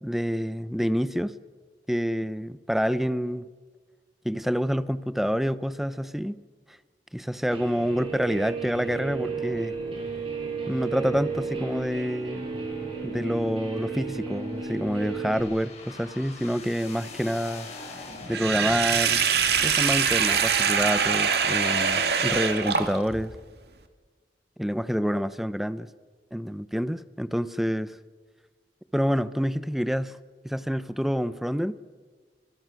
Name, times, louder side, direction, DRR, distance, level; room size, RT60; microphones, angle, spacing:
voice 1, 0.0-1.4 1.9-3.5 4.2-6.4 7.1-9.7 10.7-12.5 13.0-17.7 18.3-19.3 19.6-23.4 24.6-25.9 26.3-28.0 28.9-30.2 30.4-31.8, equal, ahead, 14 dB, 0.8 m, -27 dB
Guitar, 7.5-15.4, right 4 dB, 30° right, 6.5 m, -33 dB
sound 1, 9.4-21.1, left 2 dB, 40° left, 5.7 m, -46 dB
Sink (filling or washing), 18.3-23.2, right 6 dB, 65° right, 2.1 m, -23 dB
29.0 x 26.5 x 6.4 m, 1.5 s
head